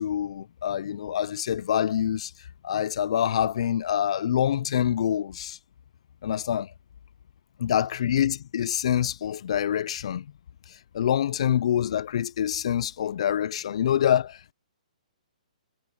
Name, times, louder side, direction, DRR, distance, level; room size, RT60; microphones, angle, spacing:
voice 1, 0.0-2.3 2.6-5.6 6.2-6.7 7.6-10.3 10.9-14.5, left 10 dB, 45° left, 0.3 m, -26 dB
hypercardioid pair, 170°, 4 cm